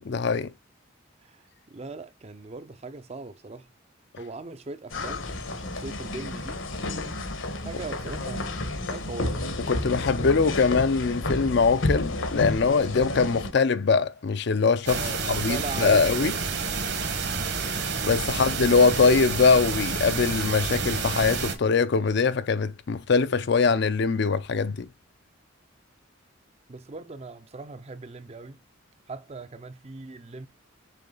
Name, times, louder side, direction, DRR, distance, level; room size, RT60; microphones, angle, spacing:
voice 1, 0.1-0.5 7.7-7.8 9.7-16.3 18.0-24.9, left 4 dB, 60° left, 0.5 m, -22 dB
voice 2, 1.7-3.7 4.2-6.6 7.6-9.4 14.9-16.6 18.3-18.5 26.7-28.6 29.1-30.5, right 3 dB, 30° right, 0.5 m, -40 dB
sound 1, 4.9-13.5, left 2 dB, 75° left, 1.3 m, -31 dB
sound 2, 14.9-21.5, right 4 dB, 55° right, 1.2 m, -29 dB
6.7 x 3.7 x 3.8 m
head